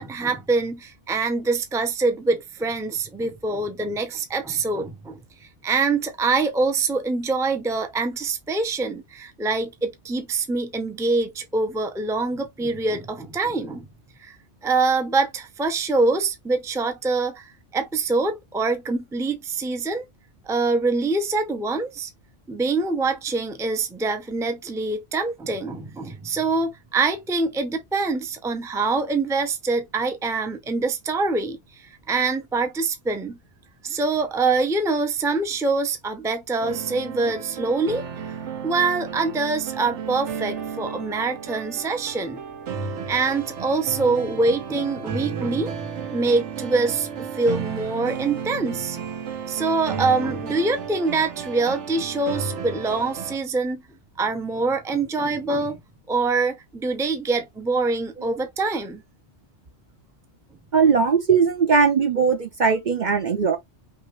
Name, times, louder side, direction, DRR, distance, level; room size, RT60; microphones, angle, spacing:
voice 1, 0.0-5.2 5.6-13.9 14.2-14.3 14.6-20.0 20.5-22.1 22.5-33.4 33.8-38.0 38.6-42.4 43.1-45.7 46.1-49.0 49.5-53.8 54.2-55.8 56.1-59.0, right 3 dB, 5° right, 0.5 m, -24 dB
sound 1, 36.6-53.4, right 6 dB, 85° right, 1.2 m, -33 dB
voice 2, 60.7-63.6, right 5 dB, 50° right, 0.7 m, -19 dB
5.7 x 2.5 x 3.0 m
omnidirectional pair, 1.2 m